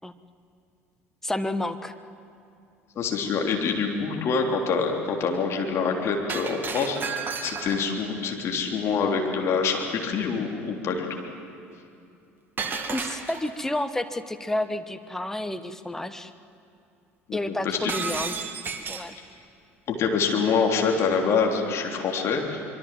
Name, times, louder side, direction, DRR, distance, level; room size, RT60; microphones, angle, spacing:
voice 1, 1.2-1.9 12.7-16.3 17.3-18.4 18.9-19.1, left 1 dB, 5° left, 9 dB, 1.2 m, -30 dB
voice 2, 3.0-11.2 17.3-17.9 19.9-22.7, left 5 dB, 40° left, 1 dB, 3.4 m, -26 dB
Shatter, 6.3-8.0 12.6-13.6 17.9-19.1, right 5 dB, 30° right, 2.2 m, -32 dB
25.0 x 22.5 x 7.6 m, 2.6 s
figure-of-eight pair, 65°, 7 cm